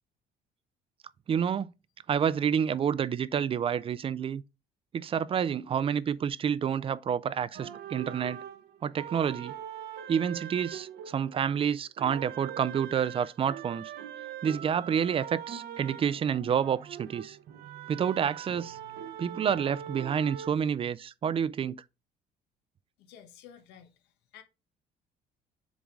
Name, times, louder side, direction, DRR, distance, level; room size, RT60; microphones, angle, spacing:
voice 1, 1.3-1.7 2.1-4.4 4.9-8.4 8.8-9.5 10.1-13.9 14.4-17.4 17.9-18.8 19.2-21.8, right 8 dB, 35° right, 0.4 m, -29 dB
sound 1, 7.5-11.6 12.0-20.6, right 10 dB, 70° right, 0.9 m, -42 dB
voice 2, 23.0-24.4, left 8 dB, 90° left, 0.9 m, -53 dB
7.1 x 3.8 x 3.6 m
cardioid pair, 110°, 17 cm